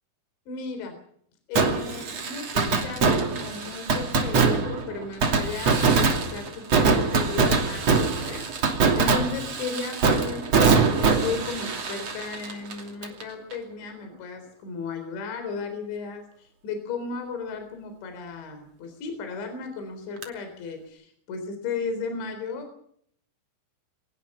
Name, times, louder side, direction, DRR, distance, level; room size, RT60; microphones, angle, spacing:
voice 1, 0.5-0.9 1.5-10.5 11.0-22.8, left 4 dB, 65° left, 6 dB, 6.0 m, -35 dB
Fireworks, 1.6-13.2 13.5-13.6 20.2-20.3, right 4 dB, 40° right, 3.2 m, -23 dB
24.5 x 20.0 x 5.5 m, 0.65 s
omnidirectional pair, 5.8 m